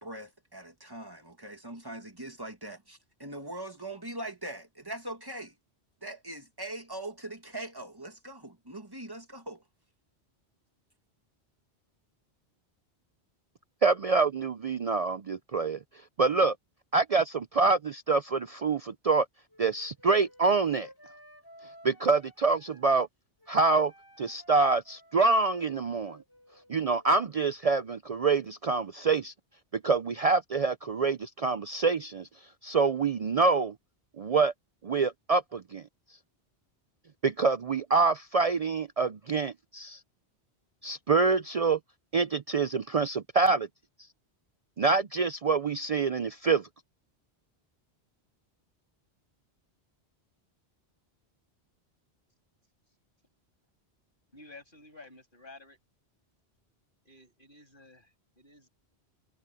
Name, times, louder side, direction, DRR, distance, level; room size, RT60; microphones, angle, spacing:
voice 1, 0.0-5.5 6.0-9.6, right 1 dB, 20° right, 2.4 m, -41 dB
voice 2, 13.8-15.8 16.2-16.6 16.9-19.3 19.6-20.9 21.8-23.1 23.5-23.9 24.2-26.2 26.7-29.3 29.7-32.3 32.6-33.7 34.2-34.5 34.8-35.8 37.2-40.0 40.8-41.8 42.1-43.7 44.8-46.7, right 4 dB, 50° right, 0.5 m, -26 dB
Wind instrument woodwind instrument, 19.5-23.1 23.4-27.2, equal, 20° left, 7.1 m, -55 dB
voice 3, 54.3-55.8 57.0-58.7, left 2 dB, 50° left, 7.6 m, -52 dB
omnidirectional pair, 1.1 m